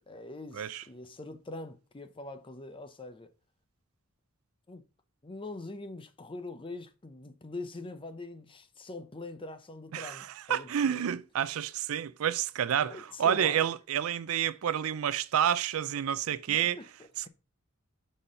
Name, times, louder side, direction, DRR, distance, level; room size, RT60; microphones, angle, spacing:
voice 1, 0.1-3.3 4.7-4.8 5.2-11.0 12.9-13.6 16.5-17.3, left 2 dB, 25° left, 0.7 m, -43 dB
voice 2, 9.9-16.8, right 9 dB, 70° right, 0.4 m, -29 dB
5.5 x 4.3 x 6.2 m
head